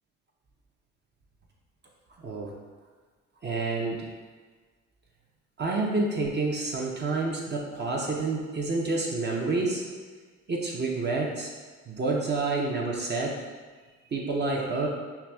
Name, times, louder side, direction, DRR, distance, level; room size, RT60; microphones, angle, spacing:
voice 1, 2.2-2.6 3.4-4.1 5.6-9.8 10.5-11.5 11.9-13.4 14.1-14.9, right 3 dB, 35° right, -2 dB, 0.5 m, -28 dB
5.7 x 2.5 x 2.2 m, 1.4 s
cardioid pair, 90°, 30 cm